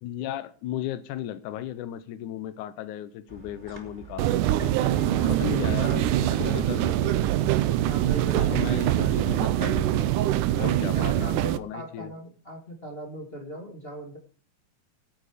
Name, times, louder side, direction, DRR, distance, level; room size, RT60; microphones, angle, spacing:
voice 1, 0.0-4.8 5.3-7.3 8.4-10.0 10.6-12.1, left 12 dB, 85° left, 1.7 m, -35 dB
sound 1, 3.3-11.3, right 2 dB, 10° right, 3.6 m, -42 dB
sound 2, 4.2-11.6, right 13 dB, 80° right, 1.8 m, -24 dB
voice 2, 4.8-7.2 7.9-9.6 10.5-14.2, right 1 dB, 25° left, 1.2 m, -39 dB
17.5 x 8.3 x 5.0 m
omnidirectional pair, 4.4 m